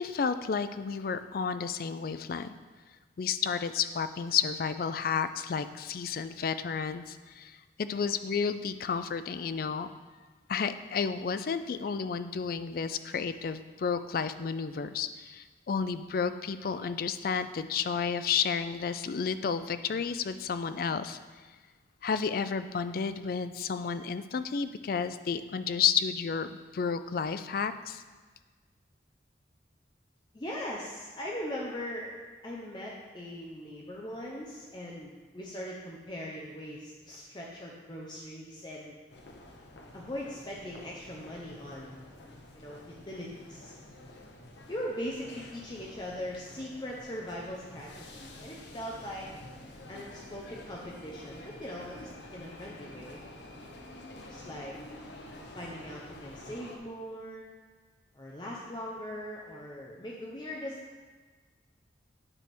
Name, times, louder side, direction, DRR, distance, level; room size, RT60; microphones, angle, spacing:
voice 1, 0.0-2.5 3.2-9.9 10.5-21.2 22.0-28.0, left 6 dB, 50° left, 11 dB, 0.3 m, -31 dB
voice 2, 30.3-39.0 39.9-42.0 42.5-43.7 44.7-49.3 49.9-53.2 54.3-54.7 55.5-57.5 58.1-60.8, equal, 25° left, -3 dB, 0.7 m, -40 dB
sound 1, 39.1-56.8, left 1 dB, 65° left, 0.9 m, -49 dB
8.8 x 3.5 x 6.0 m, 1.4 s
head